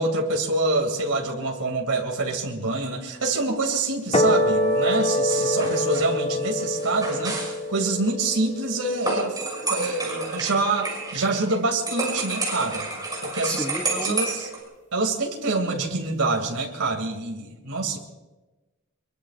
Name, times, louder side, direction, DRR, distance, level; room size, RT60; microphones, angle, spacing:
voice 1, 0.0-9.4 9.7-12.9 13.2-13.6 13.9-14.5 14.9-18.0, right 3 dB, 75° right, 1 dB, 2.7 m, -26 dB
sound 1, 4.1-10.6, left 1 dB, 30° left, 2.2 m, -26 dB
sound 2, 5.3-7.6 9.0-11.6 11.9-14.6, right 3 dB, 20° right, 6.0 m, -30 dB
voice 2, 13.4-14.2, left 1 dB, 5° left, 7 dB, 0.5 m, -31 dB
24.5 x 23.0 x 2.5 m, 1.1 s
head